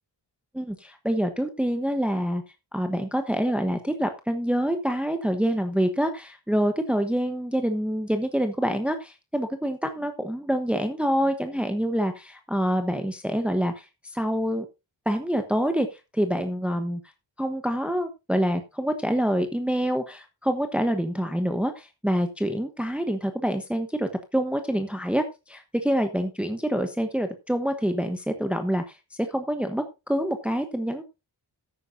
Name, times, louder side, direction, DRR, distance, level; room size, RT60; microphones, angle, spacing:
voice 1, 0.5-2.4 2.7-14.6 15.0-17.0 17.4-31.0, equal, 5° right, 6 dB, 1.0 m, -26 dB
14.0 x 9.5 x 2.7 m, 0.25 s
wide cardioid pair, 105°, 44 cm